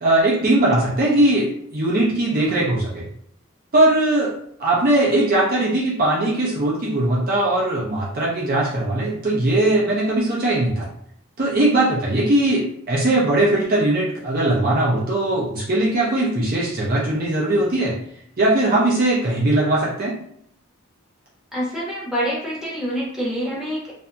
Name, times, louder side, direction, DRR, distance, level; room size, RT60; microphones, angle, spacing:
voice 1, 0.0-3.1 3.7-4.3 4.6-10.9 11.4-17.9 18.4-20.2, right 1 dB, 40° right, -5 dB, 0.5 m, -20 dB
voice 2, 21.5-23.9, equal, ahead, -8 dB, 0.9 m, -26 dB
2.7 x 2.5 x 2.2 m, 0.67 s
head